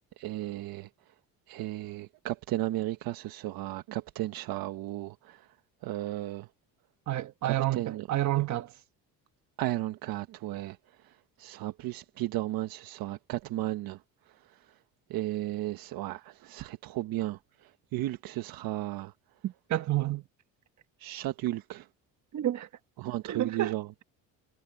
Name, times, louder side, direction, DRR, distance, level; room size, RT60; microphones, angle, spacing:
voice 1, 0.2-1.1 1.5-5.5 5.8-6.5 7.4-8.1 9.6-14.0 14.3-14.8 15.1-19.1 21.0-21.9 23.0-23.9, right 15 dB, 75° right, 1.2 m, -35 dB
voice 2, 7.1-8.8 19.4-20.2 22.3-22.7 23.2-23.7, right 14 dB, 50° right, 1.4 m, -29 dB
cardioid pair, 110°, 36 cm